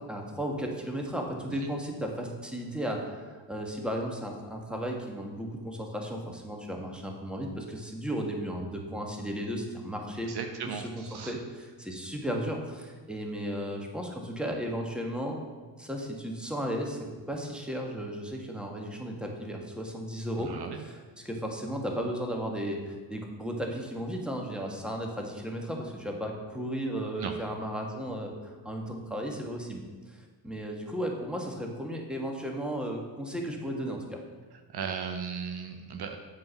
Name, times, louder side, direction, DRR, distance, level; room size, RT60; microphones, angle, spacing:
voice 1, 0.0-10.3 10.7-15.4 15.8-34.2, equal, ahead, 1 dB, 1.7 m, -35 dB
voice 2, 10.3-11.3 20.4-20.8 27.2-27.3 34.7-36.2, right 6 dB, 55° right, 5 dB, 0.8 m, -36 dB
7.4 x 5.0 x 5.7 m, 1.5 s
hypercardioid pair, 50°, 46 cm